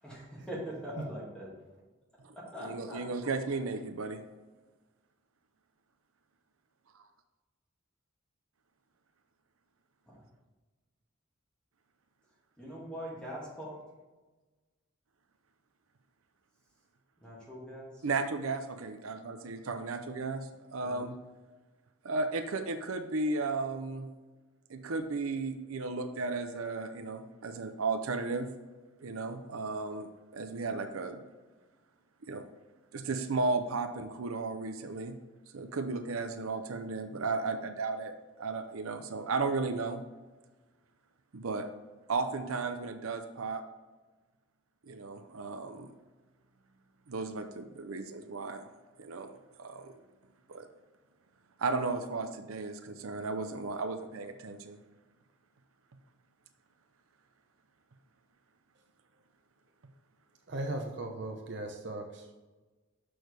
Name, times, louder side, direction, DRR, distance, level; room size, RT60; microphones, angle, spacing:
voice 1, 0.0-1.6 2.3-3.6 10.1-10.3 12.6-13.8 17.2-18.0 20.8-21.1, equal, 5° left, -6 dB, 2.2 m, -43 dB
voice 2, 2.7-4.2 18.0-21.2 22.0-24.1 24.7-28.5 29.0-31.2 32.2-32.4 32.9-35.2 35.5-38.1 38.4-40.0 41.3-41.7 42.1-43.6 44.9-45.9 47.1-48.7 49.0-49.9 50.5-50.6 51.6-54.8, right 3 dB, 90° right, 7 dB, 0.6 m, -34 dB
voice 3, 60.5-62.3, right 2 dB, 55° right, 3 dB, 0.7 m, -37 dB
6.3 x 6.2 x 3.4 m, 1.2 s
head